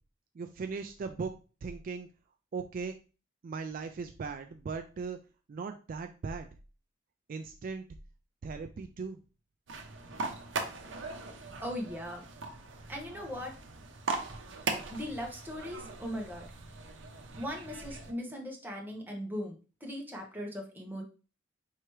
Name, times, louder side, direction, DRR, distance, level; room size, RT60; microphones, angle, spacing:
voice 1, 0.4-1.3 1.6-2.1 2.5-3.0 3.4-5.2 5.5-6.5 7.3-7.8 8.4-9.2, right 4 dB, 50° right, 7 dB, 0.3 m, -38 dB
sound 1, 9.7-18.1, right 3 dB, 75° right, 0.7 m, -40 dB
voice 2, 11.6-12.2 12.9-13.6 14.9-16.5 17.4-21.0, equal, 10° right, 0 dB, 0.9 m, -39 dB
4.6 x 2.9 x 3.1 m, 0.34 s
head